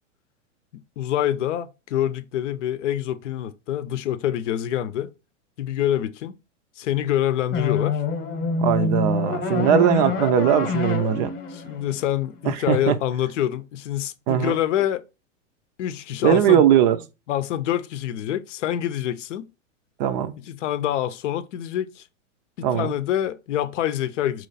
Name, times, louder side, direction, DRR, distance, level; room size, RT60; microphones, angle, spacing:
voice 1, 0.7-5.1 5.6-6.4 6.8-8.0 8.8-9.0 9.6-9.7 11.5-15.0 15.8-16.6 17.3-19.5 20.4-22.1 22.6-24.5, left 11 dB, 70° left, 0.6 m, -26 dB
sound 1, 7.5-12.6, left 4 dB, 25° left, 0.9 m, -26 dB
voice 2, 8.6-11.3 12.5-13.0 14.3-14.6 16.2-17.0 20.0-20.3 22.6-22.9, right 9 dB, 35° right, 0.5 m, -20 dB
4.1 x 3.1 x 4.0 m
hypercardioid pair, 135°, 38 cm